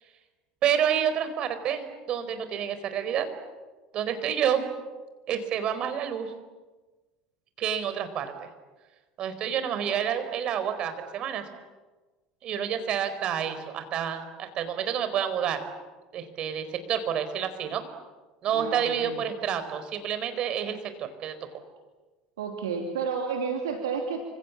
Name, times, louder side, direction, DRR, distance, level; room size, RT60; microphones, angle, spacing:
voice 1, 0.6-3.3 3.9-4.6 5.3-6.3 7.6-8.5 9.2-11.5 12.4-15.6 16.1-17.9 18.4-21.3, right 8 dB, 40° right, 10 dB, 4.4 m, -29 dB
voice 2, 18.5-19.2 22.4-24.2, right 5 dB, 65° right, 4 dB, 2.9 m, -31 dB
29.0 x 26.5 x 7.5 m, 1.2 s
figure-of-eight pair, 70°, 2 cm